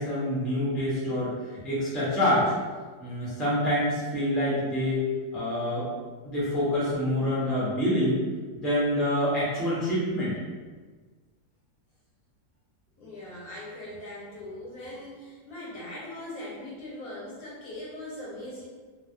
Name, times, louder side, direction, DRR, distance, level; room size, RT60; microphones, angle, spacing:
voice 1, 0.0-2.5 3.0-5.0 5.3-5.9 6.2-8.2 8.5-10.4, left 1 dB, ahead, -9 dB, 0.4 m, -26 dB
voice 2, 13.0-18.6, left 1 dB, 60° left, -6 dB, 1.0 m, -40 dB
3.2 x 2.4 x 2.7 m, 1.4 s
omnidirectional pair, 2.0 m